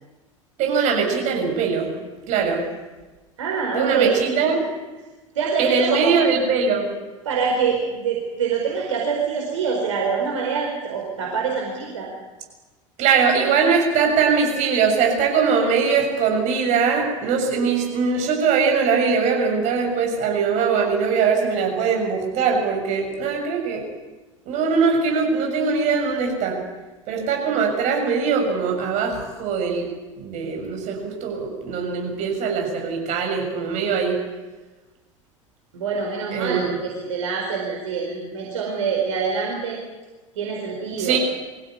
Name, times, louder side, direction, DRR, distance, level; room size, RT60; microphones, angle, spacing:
voice 1, 0.6-1.9 2.3-2.6 3.8-4.1 4.4-4.6 5.6-6.9 13.0-23.9 24.5-26.6 27.1-29.9 30.2-34.2 36.3-36.8 41.0-41.2, right 5 dB, 45° right, 2 dB, 6.9 m, -21 dB
voice 2, 3.4-4.6 5.3-6.1 7.2-12.1 35.7-39.8 40.3-41.2, right 5 dB, 65° right, -1 dB, 4.8 m, -25 dB
23.5 x 16.5 x 9.6 m, 1.2 s
figure-of-eight pair, 75°, 17 cm